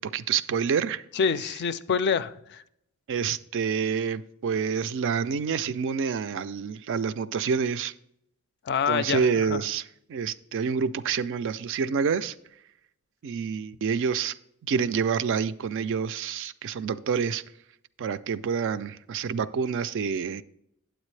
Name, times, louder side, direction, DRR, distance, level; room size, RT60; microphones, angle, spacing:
voice 1, 0.0-1.0 3.1-7.9 8.9-12.4 13.2-14.4 14.6-17.4 18.0-20.4, right 6 dB, 55° right, 0.3 m, -28 dB
voice 2, 1.2-2.6 8.7-9.6, left 6 dB, 50° left, 0.3 m, -26 dB
8.9 x 8.1 x 3.2 m
head